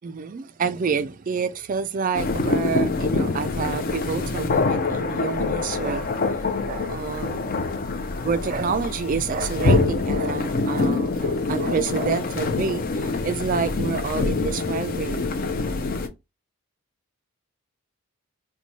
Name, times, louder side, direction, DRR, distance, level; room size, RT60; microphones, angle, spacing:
voice 1, 0.0-6.1 6.6-7.8 8.2-15.2, right 5 dB, 35° right, 0.3 m, -28 dB
sound 1, 2.1-16.1, left 3 dB, 40° left, 0.4 m, -25 dB
3.1 x 2.2 x 4.0 m
head